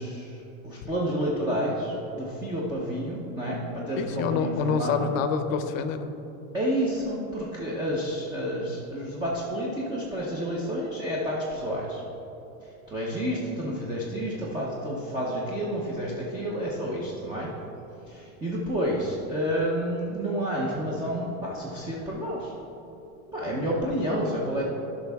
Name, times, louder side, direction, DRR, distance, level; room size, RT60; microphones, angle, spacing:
voice 1, 0.0-5.1 6.5-12.0 12.9-17.5 18.1-22.5 23.3-24.6, equal, 10° right, -4 dB, 0.8 m, -30 dB
voice 2, 3.9-6.1, left 6 dB, 65° left, 9 dB, 0.8 m, -27 dB
12.5 x 6.0 x 3.5 m, 3.0 s
supercardioid pair, 155°, 42 cm